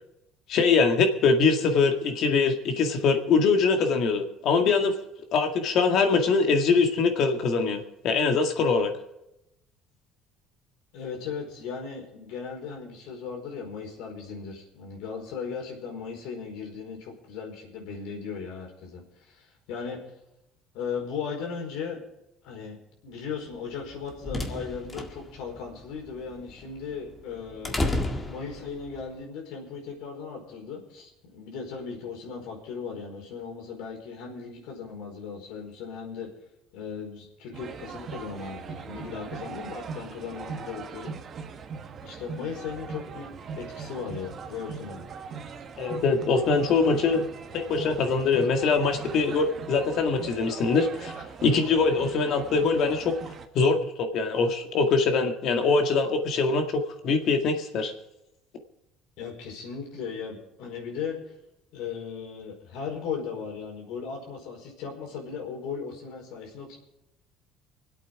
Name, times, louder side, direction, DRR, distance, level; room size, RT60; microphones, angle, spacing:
voice 1, 0.5-4.9 5.3-8.9 45.8-47.2 47.5-51.1 51.4-53.2 53.5-57.9, left 4 dB, 60° left, 5 dB, 2.0 m, -23 dB
voice 2, 10.9-20.0 20.7-22.0 22.4-27.9 28.2-36.3 36.7-41.2 42.0-43.3 43.6-45.0 59.2-61.2 61.7-66.8, left 6 dB, 80° left, 0 dB, 4.8 m, -37 dB
sound 1, 23.7-29.0, left 2 dB, 20° left, 1.8 m, -33 dB
sound 2, 37.5-53.5, right 6 dB, 45° right, 1.3 m, -40 dB
25.0 x 8.4 x 4.9 m, 0.88 s
supercardioid pair, 100°, 0 cm